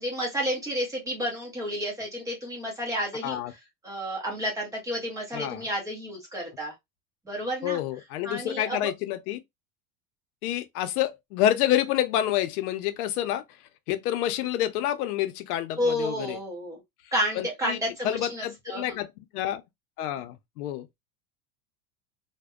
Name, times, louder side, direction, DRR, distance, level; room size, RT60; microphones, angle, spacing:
voice 1, 0.0-3.4 3.8-6.7 7.3-7.8 8.2-8.8 15.8-16.8 17.1-19.0, equal, 10° right, 0.5 m, -31 dB
voice 2, 5.3-5.7 7.6-9.4 10.4-13.4 13.9-16.4 17.3-17.8 18.0-19.6 20.0-20.9, left 12 dB, 85° left, 0.6 m, -28 dB
2.6 x 2.1 x 2.3 m
supercardioid pair, 165°, 44 cm